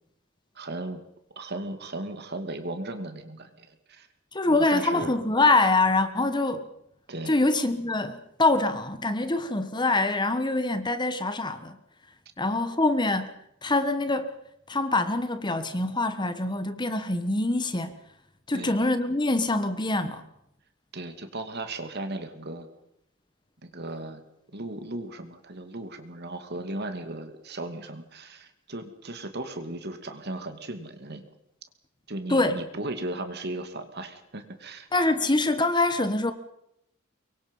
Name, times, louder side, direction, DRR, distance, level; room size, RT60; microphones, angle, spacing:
voice 1, 0.5-1.0 1.4-4.1 4.5-5.1 7.1-7.4 18.5-18.8 20.9-22.7 23.6-24.2 24.5-31.2 32.1-34.9, right 2 dB, 50° right, 2.6 m, -36 dB
voice 2, 4.3-6.7 7.3-11.8 12.4-13.3 13.6-14.4 14.7-17.9 18.5-20.3 32.3-32.6 34.9-36.3, left 2 dB, 20° left, 1.2 m, -24 dB
24.5 x 23.0 x 5.6 m
head